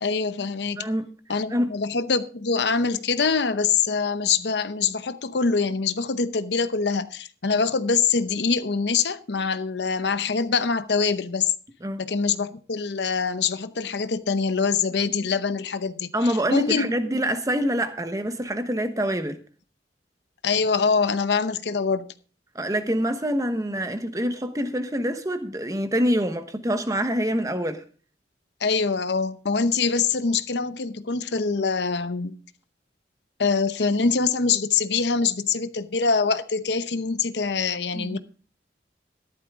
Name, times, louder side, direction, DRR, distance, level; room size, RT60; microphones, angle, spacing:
voice 1, 0.0-0.9 1.3-11.5 12.0-16.9 20.4-22.1 28.6-32.4 33.4-38.2, left 5 dB, 70° left, 0.8 m, -24 dB
voice 2, 0.8-1.1 1.5-1.7 11.8-12.0 16.1-19.4 22.5-27.8 37.9-38.2, equal, 20° right, 1.1 m, -25 dB
14.0 x 12.0 x 3.6 m
head